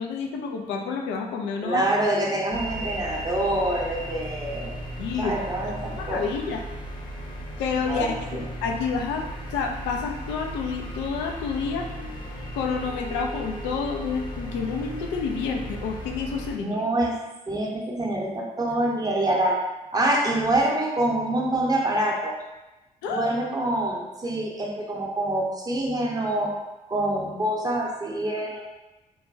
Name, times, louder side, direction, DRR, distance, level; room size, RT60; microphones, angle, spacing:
voice 1, 0.0-1.8 5.0-5.3 6.0-6.6 7.6-8.2 8.6-9.3 9.5-11.9 12.5-16.7 23.0-23.3, left 5 dB, 65° left, 2 dB, 0.4 m, -29 dB
voice 2, 1.6-4.8 5.2-6.2 7.9-8.4 16.6-17.2 17.5-19.6 19.9-22.4 23.1-26.6 26.9-28.6, right 1 dB, 20° right, -2 dB, 0.7 m, -26 dB
sound 1, 2.5-16.6, equal, 25° left, 0.7 m, -36 dB
3.1 x 2.2 x 2.6 m, 1.0 s
hypercardioid pair, 45°, 19 cm